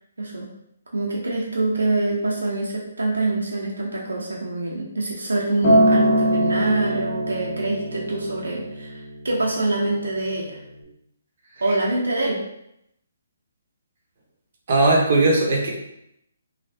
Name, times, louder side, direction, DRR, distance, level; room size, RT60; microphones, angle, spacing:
voice 1, 0.2-0.5 0.9-10.6 11.6-12.4, right 2 dB, 85° right, -3 dB, 0.7 m, -25 dB
Acoustic guitar, 5.6-9.9 10.8-10.9, right 1 dB, 35° left, 1.3 m, -22 dB
voice 2, 14.7-15.7, right 2 dB, 55° right, -1 dB, 0.9 m, -18 dB
3.3 x 2.4 x 2.7 m, 0.79 s
hypercardioid pair, 145°, 0 cm